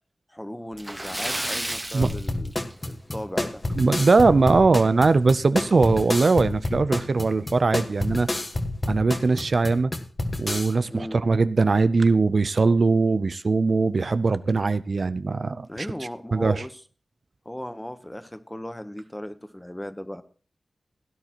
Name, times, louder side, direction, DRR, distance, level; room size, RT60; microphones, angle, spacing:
voice 1, 0.3-2.5 2.9-3.6 10.9-11.2 15.7-16.8 17.4-20.2, left 1 dB, 10° left, 0.9 m, -36 dB
Splash splatter, 0.7-3.1 3.4-3.6 4.0-4.1 5.6-5.7 6.0-6.1 6.7-7.0, right 1 dB, 15° right, 1.2 m, -32 dB
sound 1, 2.0-10.7, left 1 dB, 30° left, 1.4 m, -29 dB
voice 2, 3.8-8.3 8.9-9.9 10.4-15.9 16.3-16.6, right 3 dB, 60° right, 0.5 m, -21 dB
16.5 x 10.5 x 2.9 m
wide cardioid pair, 85°, 0 cm